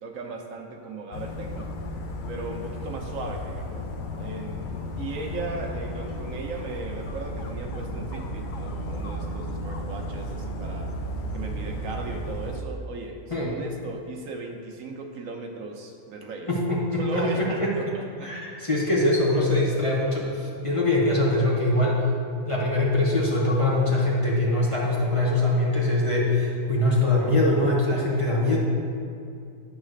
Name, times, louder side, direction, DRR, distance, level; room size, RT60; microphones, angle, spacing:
voice 1, 0.0-1.7 2.3-10.9 11.3-16.5 17.0-18.3, right 3 dB, 75° right, 2 dB, 1.1 m, -37 dB
Dog, 1.1-12.6, equal, 60° left, 0.5 m, -34 dB
voice 2, 16.5-17.7 18.2-22.0 22.5-28.6, left 2 dB, 25° left, -5 dB, 1.1 m, -23 dB
9.6 x 3.2 x 6.4 m, 2.4 s
omnidirectional pair, 1.4 m